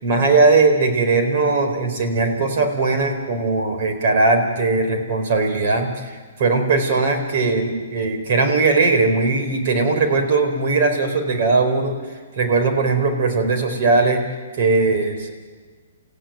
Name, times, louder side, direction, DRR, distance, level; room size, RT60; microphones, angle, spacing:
voice 1, 0.0-12.0 12.3-14.2 14.6-15.4, right 3 dB, 50° right, 5 dB, 4.5 m, -19 dB
29.5 x 15.5 x 9.2 m, 1.5 s
hypercardioid pair, 150°, 0 cm